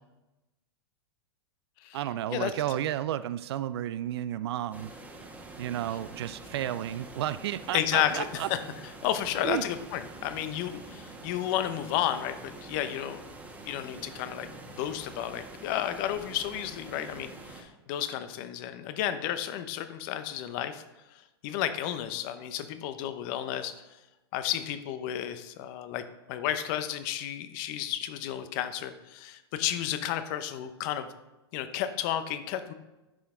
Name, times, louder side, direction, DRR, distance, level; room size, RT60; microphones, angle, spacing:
voice 1, 1.9-4.9 5.6-8.5 9.4-9.7, right 12 dB, 75° right, 15 dB, 0.4 m, -32 dB
sound 1, 4.7-17.6, right 2 dB, 10° right, 1.5 m, -46 dB
voice 2, 7.7-8.6 9.0-13.2 13.7-20.8 21.4-23.7 24.3-26.0 26.3-31.1 31.5-32.7, left 11 dB, 50° left, 11 dB, 0.8 m, -32 dB
9.9 x 5.9 x 3.7 m, 1.0 s
hypercardioid pair, 120°, 14 cm